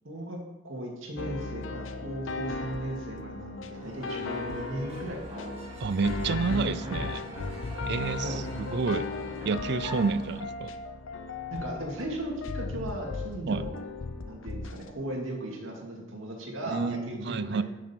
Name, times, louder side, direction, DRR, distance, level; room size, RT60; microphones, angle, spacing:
voice 1, 0.0-0.4 0.6-5.3 6.3-7.3 8.2-8.5 11.5-13.8 14.2-17.6, right 1 dB, 90° right, -1 dB, 2.4 m, -37 dB
sound 1, 1.2-14.9, left 3 dB, 85° left, 0.7 m, -36 dB
sound 2, 3.7-10.4, equal, 30° right, 2.3 m, -42 dB
voice 2, 5.8-7.2 7.9-9.1 9.4-10.7 13.5-13.6 16.7-17.6, right 4 dB, 55° right, 14 dB, 0.4 m, -29 dB
10.5 x 6.6 x 4.5 m, 1.0 s
head